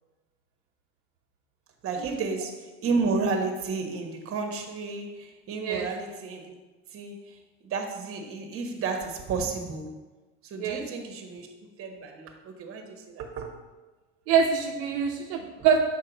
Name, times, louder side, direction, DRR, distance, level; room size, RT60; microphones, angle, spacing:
voice 1, 1.8-6.5 6.9-10.0 10.4-11.5 11.8-13.6, right 4 dB, 45° right, 4 dB, 1.2 m, -32 dB
voice 2, 14.3-15.8, right 7 dB, 85° right, 1 dB, 0.8 m, -24 dB
6.5 x 5.5 x 4.0 m, 1.2 s
supercardioid pair, 115°, 30 cm